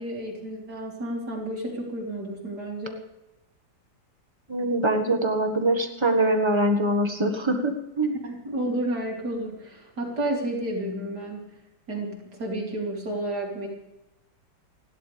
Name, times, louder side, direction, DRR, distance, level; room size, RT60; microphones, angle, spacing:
voice 1, 0.0-3.0 8.2-11.5 11.9-13.7, right 1 dB, 55° right, -1 dB, 3.5 m, -31 dB
voice 2, 4.5-8.1, right 1 dB, 15° right, 4 dB, 1.3 m, -23 dB
29.5 x 11.5 x 3.4 m, 0.96 s
omnidirectional pair, 2.1 m